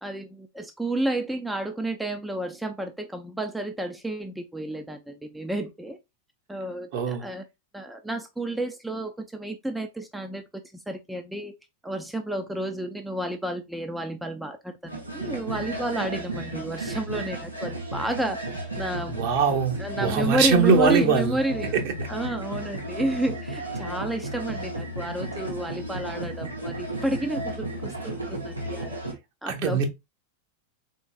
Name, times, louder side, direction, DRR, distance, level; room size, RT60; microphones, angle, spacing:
voice 1, 0.0-6.0 6.5-7.4 7.7-11.5 11.8-18.4 18.8-19.1 19.8-21.7 22.1-28.2 28.4-29.0 29.4-29.8, right 1 dB, 5° right, 0.5 m, -31 dB
voice 2, 6.9-7.2 19.1-21.4 21.7-21.9 29.5-29.9, right 5 dB, 50° right, 0.9 m, -22 dB
sound 1, 14.9-29.1, right 1 dB, 85° right, 1.0 m, -34 dB
3.8 x 3.7 x 2.3 m
figure-of-eight pair, 90°, 0 cm